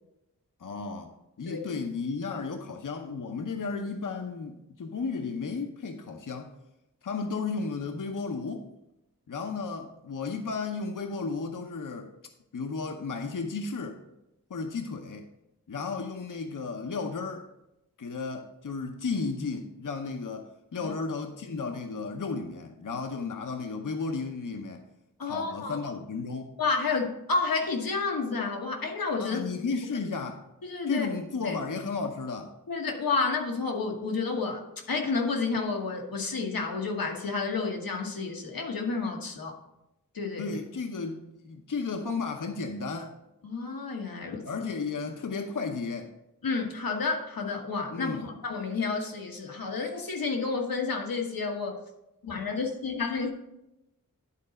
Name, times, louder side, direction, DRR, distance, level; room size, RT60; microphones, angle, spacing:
voice 1, 0.6-6.6 7.0-8.7 9.3-12.1 12.5-14.0 14.5-15.3 15.7-17.5 18.0-24.9 25.2-26.6 29.2-30.5 30.9-32.5 40.4-43.2 44.4-46.1 47.9-48.3, left 4 dB, 65° left, 5 dB, 0.8 m, -34 dB
voice 2, 25.2-25.8 26.6-29.5 30.6-31.1 31.4-31.6 32.7-34.6 34.9-39.5 40.1-40.5 43.4-44.4 46.4-51.8 52.2-53.3, left 4 dB, 85° left, 2 dB, 1.3 m, -30 dB
11.0 x 4.0 x 5.2 m, 0.88 s
cardioid pair, 50°, 34 cm